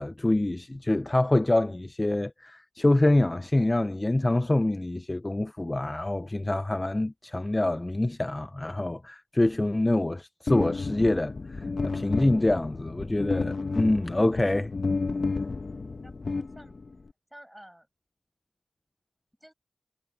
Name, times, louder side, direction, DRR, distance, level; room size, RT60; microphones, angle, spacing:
voice 1, 0.0-14.7, left 1 dB, 25° left, 0.6 m, -26 dB
sound 1, 10.5-17.1, left 4 dB, 55° left, 1.5 m, -31 dB
voice 2, 15.6-16.8 17.0-17.9 19.4-19.5, equal, 5° right, 7.8 m, -52 dB
cardioid pair, 50°, 0 cm